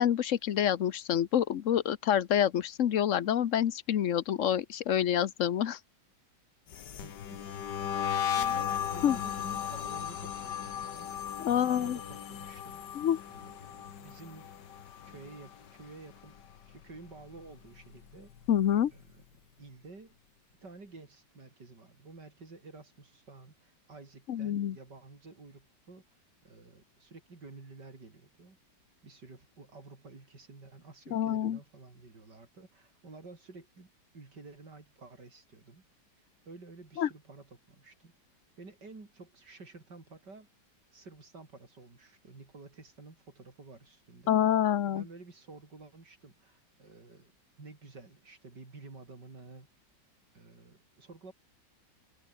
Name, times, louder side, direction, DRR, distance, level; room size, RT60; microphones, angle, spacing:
voice 1, 0.0-5.8 9.0-9.2 11.4-12.0 12.9-13.2 18.5-18.9 24.3-24.8 31.1-31.6 37.0-37.1 44.3-45.0, left 10 dB, 55° left, 1.0 m, -27 dB
sound 1, 6.7-15.9 16.2-16.6 16.9-18.5, left 8 dB, 70° left, 2.0 m, -36 dB
voice 2, 7.0-7.4 8.3-11.1 11.6-12.8 13.3-14.5 15.0-16.4 16.7-18.3 18.9-19.2 19.6-20.2 20.6-26.0 26.4-28.6 29.0-35.8 36.4-38.1 38.6-40.5 40.9-44.4 44.8-47.3 47.6-49.7 50.3-51.3, right 3 dB, 70° right, 4.8 m, -51 dB
omnidirectional pair, 1.9 m